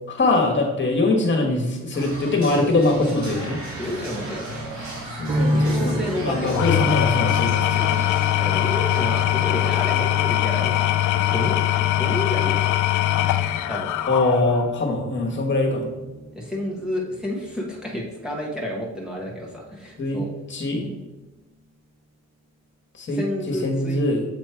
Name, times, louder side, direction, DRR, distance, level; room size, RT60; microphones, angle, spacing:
voice 1, 0.1-3.6 5.2-8.0 14.1-15.9 20.0-20.9 22.9-24.3, left 2 dB, 40° left, 1 dB, 1.5 m, -23 dB
sound 1, 1.9-10.5, right 2 dB, 70° right, 1.8 m, -37 dB
voice 2, 3.8-4.4 5.3-6.8 8.4-10.9 11.3-11.6 11.9-12.7 13.7-13.9 16.3-20.3 23.1-24.0, left 1 dB, ahead, -3 dB, 1.1 m, -30 dB
sound 2, 5.3-20.5 20.8-21.7, equal, 20° right, 0.4 m, -33 dB
Engine / Tools, 6.4-14.8, left 14 dB, 75° left, 0.5 m, -22 dB
7.8 x 3.1 x 4.6 m, 1.0 s
cardioid pair, 90°, 30 cm